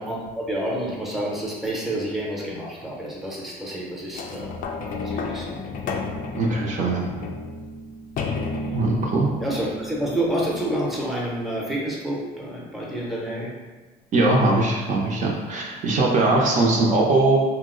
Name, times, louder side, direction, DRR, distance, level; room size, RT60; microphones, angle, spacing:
voice 1, 0.0-4.6 4.8-5.6 9.4-13.5, right 1 dB, ahead, -4 dB, 0.7 m, -29 dB
sound 1, 4.1-10.9 11.5-11.6, left 3 dB, 55° left, 0.4 m, -32 dB
voice 2, 6.3-7.1 8.7-9.3 14.1-17.4, right 2 dB, 50° right, -2 dB, 0.5 m, -20 dB
2.8 x 2.0 x 3.7 m, 1.3 s
cardioid pair, 110°, 17 cm